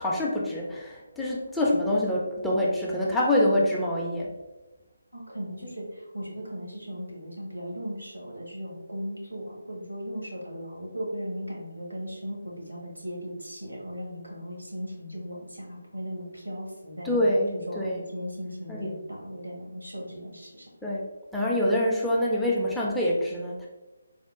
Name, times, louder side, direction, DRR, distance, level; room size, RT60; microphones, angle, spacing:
voice 1, 0.0-4.3 17.0-18.0 18.7-18.9 20.8-23.7, left 1 dB, 5° left, -6 dB, 0.4 m, -26 dB
voice 2, 5.1-17.1 17.5-20.7, equal, 90° right, -3 dB, 1.4 m, -37 dB
3.7 x 2.1 x 3.6 m, 1.1 s
figure-of-eight pair, 150°, 0 cm